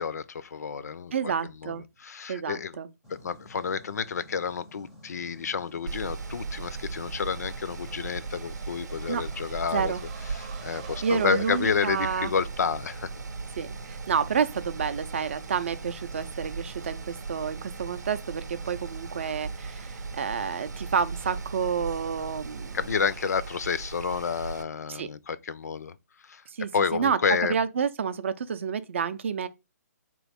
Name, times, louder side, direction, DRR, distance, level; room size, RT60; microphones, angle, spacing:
voice 1, 0.0-1.3 1.6-2.8 3.1-9.9 10.3-13.1 22.7-26.0 26.2-26.4 26.7-27.5, left 6 dB, 70° left, 0.4 m, -30 dB
voice 2, 1.1-1.8 2.3-2.9 9.1-9.2 9.7-10.0 11.0-12.3 13.6-22.8 24.9-25.1 26.5-29.5, right 6 dB, 45° right, 0.4 m, -29 dB
sound 1, 3.0-22.9, left 1 dB, ahead, 0.5 m, -51 dB
Mechanical fan, 5.9-24.6, right 4 dB, 85° right, 0.7 m, -38 dB
sound 2, 6.4-13.0, right 6 dB, 25° right, 0.8 m, -50 dB
3.9 x 3.0 x 3.5 m
hypercardioid pair, 165°, 9 cm